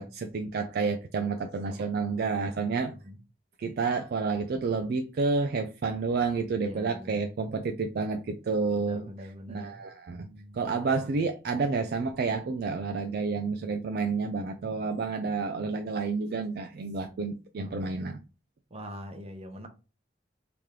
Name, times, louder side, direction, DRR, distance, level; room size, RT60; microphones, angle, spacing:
voice 1, 0.0-2.9 3.6-9.1 9.5-10.3 10.5-18.2, right 4 dB, 60° right, 0.4 m, -30 dB
voice 2, 1.7-2.2 2.7-3.2 6.6-7.3 8.8-9.8 10.1-10.7 17.6-17.8 18.7-19.7, equal, 35° right, 0.8 m, -44 dB
3.2 x 2.9 x 3.7 m
head